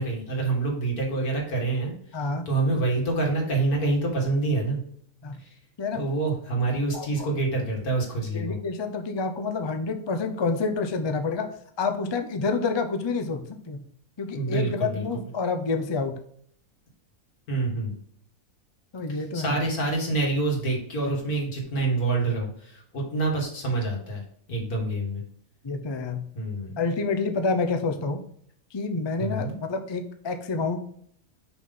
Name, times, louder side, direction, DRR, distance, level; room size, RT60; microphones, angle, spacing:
voice 1, 0.0-2.2 2.5-4.8 5.4-5.6 5.9-8.6 14.3-15.2 17.5-17.9 19.1-25.2 26.3-26.8 29.2-29.5, right 3 dB, 90° left, -1 dB, 2.6 m, -27 dB
voice 2, 2.1-2.5 5.2-5.4 5.8-6.0 6.9-7.3 8.3-11.5 11.8-13.8 14.2-16.2 18.9-19.6 25.6-26.3 26.8-28.2 28.7-30.8, left 4 dB, 35° left, 7 dB, 0.4 m, -28 dB
6.1 x 5.5 x 3.8 m, 0.65 s
omnidirectional pair, 1.5 m